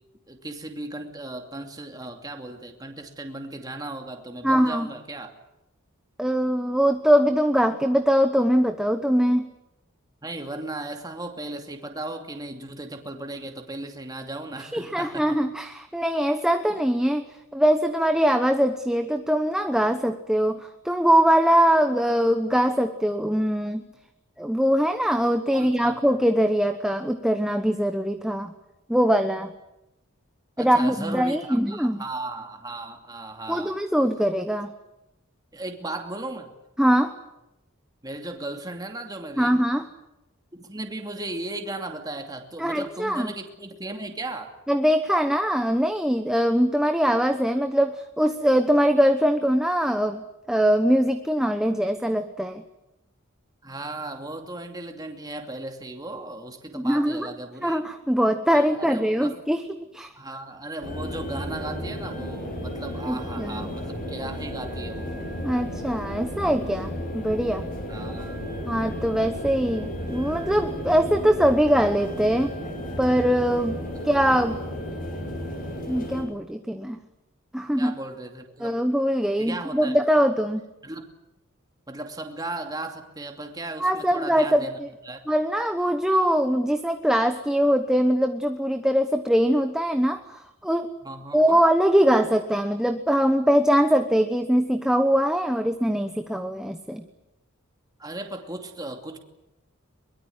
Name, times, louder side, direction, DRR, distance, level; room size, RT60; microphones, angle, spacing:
voice 1, 0.3-5.3 10.2-15.3 16.7-16.8 25.5-26.0 30.6-33.8 35.5-36.5 38.0-39.6 40.6-44.5 53.6-57.8 58.5-59.4 60.2-65.1 67.9-68.4 73.9-74.4 77.8-78.8 79.4-80.0 80.8-81.1 81.9-84.7 85.0-85.2 91.0-91.6 98.0-99.2, right 2 dB, 20° right, 4 dB, 2.6 m, -36 dB
voice 2, 4.4-4.9 6.2-9.5 14.6-17.2 17.5-23.8 24.4-28.5 28.9-29.5 30.6-32.0 33.5-34.7 36.8-37.2 39.4-39.9 42.6-43.3 44.7-52.6 56.7-57.3 57.6-59.6 59.9-60.1 63.1-63.7 65.4-67.7 68.6-72.6 73.0-73.8 74.0-74.6 75.9-77.0 77.5-77.9 78.6-80.6 83.8-84.9 85.3-90.9 91.3-97.0, equal, 5° right, 7 dB, 1.1 m, -22 dB
sound 1, 60.8-76.2, equal, 40° left, 7.5 m, -33 dB
23.0 x 22.0 x 9.6 m, 0.90 s
head